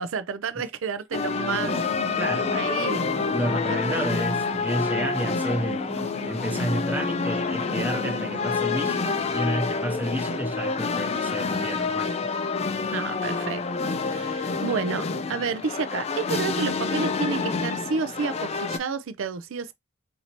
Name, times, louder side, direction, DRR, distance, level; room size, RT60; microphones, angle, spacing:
voice 1, 0.0-1.9 2.5-3.3 3.7-4.0 12.9-13.6 14.0-19.7, right 5 dB, 80° right, 0.5 m, -30 dB
sound 1, 1.1-18.8, left 4 dB, 30° left, 0.3 m, -28 dB
sound 2, 1.1-9.1, right 1 dB, 45° right, 0.7 m, -39 dB
voice 2, 2.2-2.5 3.3-12.1, right 1 dB, 10° right, 0.7 m, -31 dB
4.3 x 2.7 x 2.9 m
head